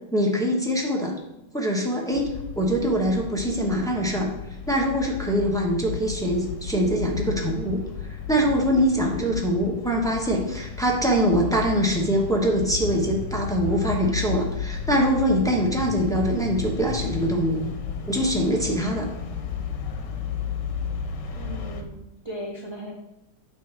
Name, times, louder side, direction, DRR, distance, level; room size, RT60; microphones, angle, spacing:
voice 1, 0.1-1.1 1.5-4.3 4.7-7.8 8.3-17.6 18.1-19.1, equal, 5° left, -1 dB, 0.8 m, -23 dB
sound 1, 2.1-21.8, left 6 dB, 80° left, 1.5 m, -33 dB
voice 2, 21.3-22.9, equal, 40° right, -2 dB, 0.4 m, -37 dB
8.9 x 3.3 x 6.0 m, 0.89 s
omnidirectional pair, 1.9 m